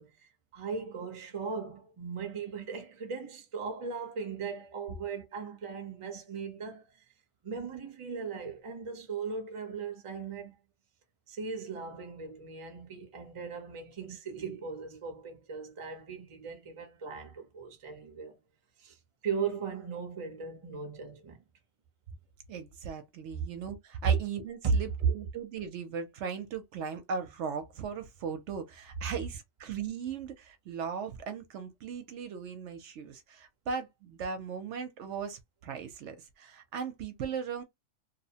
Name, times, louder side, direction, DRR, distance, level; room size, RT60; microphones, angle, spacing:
voice 1, 0.0-7.0 7.4-10.6 11.3-18.4 18.8-21.4 24.6-24.8, right 5 dB, 35° right, 0.6 m, -38 dB
voice 2, 22.5-37.6, right 6 dB, 70° right, 0.8 m, -38 dB
2.8 x 2.0 x 2.7 m
omnidirectional pair, 1.3 m